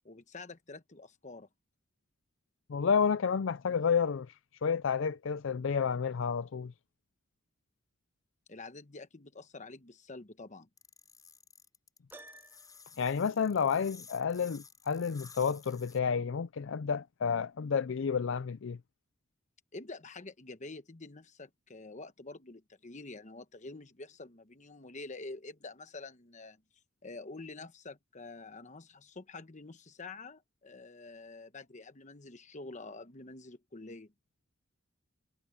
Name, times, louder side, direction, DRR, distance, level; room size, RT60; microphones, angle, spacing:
voice 1, 0.0-1.5 8.5-10.7 19.7-26.6 27.0-34.1, left 3 dB, 35° left, 1.2 m, -47 dB
voice 2, 2.7-4.3 4.6-6.7 13.0-18.8, left 6 dB, 65° left, 0.4 m, -30 dB
sound 1, 10.8-16.0, left 5 dB, 20° left, 6.0 m, -54 dB
Piano, 12.1-13.0, right 1 dB, 10° right, 0.9 m, -53 dB
head